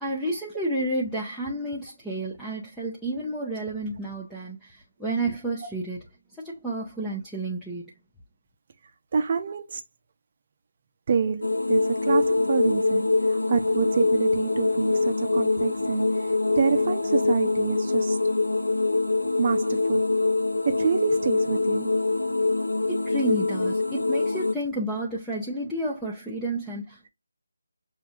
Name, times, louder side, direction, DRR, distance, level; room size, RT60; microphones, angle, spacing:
voice 1, 0.0-6.0 6.4-7.9 22.9-27.1, right 1 dB, 5° left, 0.6 m, -31 dB
voice 2, 9.1-9.8 11.1-18.2 19.4-20.0 20.6-22.1, right 6 dB, 40° right, 0.6 m, -27 dB
sound 1, 11.4-24.5, left 3 dB, 85° left, 0.7 m, -24 dB
6.8 x 2.7 x 2.4 m
figure-of-eight pair, 160°, 0 cm